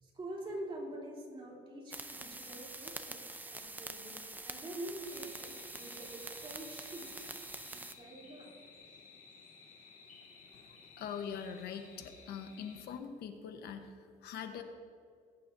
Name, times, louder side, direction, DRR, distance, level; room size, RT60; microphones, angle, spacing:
voice 1, 0.0-7.1 7.4-8.5, right 1 dB, 30° right, -3 dB, 3.2 m, -46 dB
sound 1, 1.9-7.9, right 2 dB, 10° right, 0.6 m, -46 dB
sound 2, 5.0-12.8, left 4 dB, 50° left, 1.9 m, -57 dB
voice 2, 10.7-14.6, left 7 dB, 70° left, 6 dB, 1.1 m, -43 dB
20.5 x 9.9 x 2.7 m, 2.2 s
cardioid pair, 110°, 17 cm